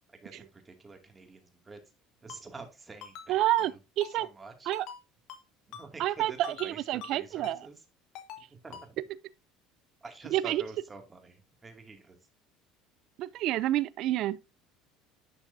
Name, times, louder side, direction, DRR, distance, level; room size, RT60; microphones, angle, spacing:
voice 1, 0.1-1.8 2.2-3.8 4.1-4.7 5.7-7.8 8.4-9.0 10.0-12.2, right 3 dB, 20° right, 2.4 m, -48 dB
Ringtone, 2.3-2.4 3.0-3.3 3.6-3.7 4.0-4.1 4.7-5.0 5.3-5.4 5.7-5.9 6.4-6.7 7.0-7.1 7.4-7.6 8.1-8.4 8.7-8.9, left 8 dB, 65° left, 1.4 m, -44 dB
voice 2, 3.3-3.7 4.0-4.3 4.7-4.9 6.0-7.6 10.3-10.6 13.2-14.4, right 14 dB, 60° right, 0.5 m, -28 dB
11.0 x 5.8 x 2.7 m
hypercardioid pair, 80°, 0 cm